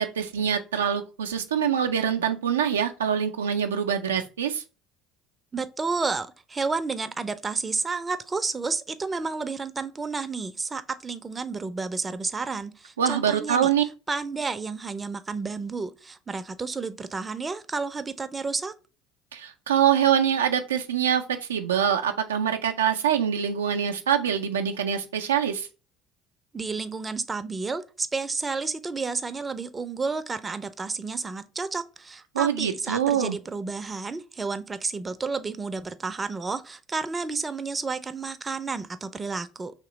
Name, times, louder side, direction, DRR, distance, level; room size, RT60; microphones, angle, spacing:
voice 1, 0.0-4.6 13.0-13.8 19.3-25.7 32.3-33.4, right 8 dB, 90° right, 0.3 m, -24 dB
voice 2, 5.5-13.7 14.1-18.7 26.5-39.7, right 4 dB, 25° right, 0.4 m, -31 dB
3.0 x 2.9 x 3.9 m
hypercardioid pair, 65°, 0 cm